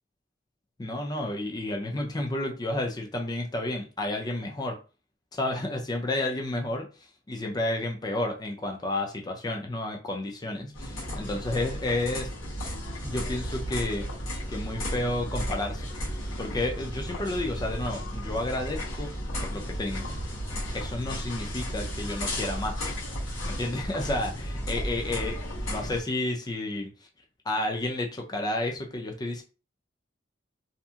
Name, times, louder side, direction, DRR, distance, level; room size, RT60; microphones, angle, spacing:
voice 1, 0.8-4.8 5.3-6.9 7.3-12.3 13.0-14.1 14.5-15.9 16.4-19.1 19.4-20.1 20.7-22.9 23.4-26.9 27.5-29.4, left 1 dB, 20° left, 2 dB, 0.5 m, -31 dB
sound 1, 10.7-26.0, equal, 85° left, 1.0 m, -34 dB
2.8 x 2.6 x 2.3 m, 0.33 s
head